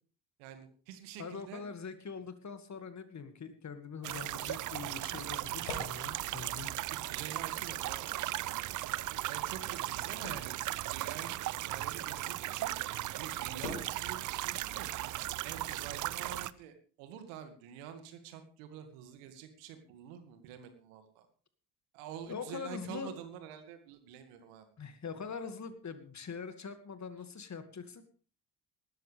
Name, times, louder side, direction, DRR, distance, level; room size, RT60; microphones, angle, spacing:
voice 1, 0.4-1.6 6.8-8.8 9.3-12.8 13.2-14.9 15.3-21.3 21.9-24.7, right 9 dB, 70° right, 8 dB, 2.3 m, -47 dB
voice 2, 1.2-6.7 22.3-23.1 24.8-28.0, left 5 dB, 35° left, 9 dB, 2.2 m, -43 dB
sound 1, 4.0-16.5, right 15 dB, 40° right, 0.5 m, -37 dB
sound 2, 4.2-16.6, left 3 dB, 75° left, 5.6 m, -52 dB
18.5 x 13.5 x 3.5 m, 0.40 s
hypercardioid pair, 55°, 50 cm